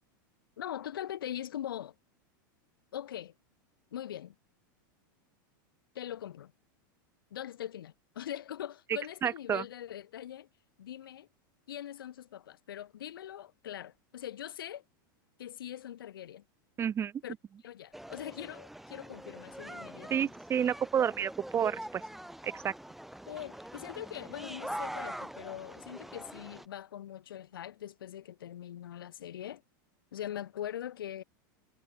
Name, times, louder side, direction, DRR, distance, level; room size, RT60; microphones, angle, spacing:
voice 1, 0.6-1.9 2.9-3.3 3.9-4.3 6.0-6.5 7.3-10.5 10.8-11.3 11.7-14.8 15.4-16.4 17.2-17.3 17.6-20.3 23.3-29.6 30.1-31.2, left 11 dB, 90° left, 5.3 m, -42 dB
voice 2, 9.2-9.6 16.8-17.1 20.1-22.0 22.4-22.7, right 8 dB, 20° right, 0.9 m, -30 dB
sound 1, 17.9-26.7, right 1 dB, ahead, 2.7 m, -44 dB
supercardioid pair, 125°, 11 cm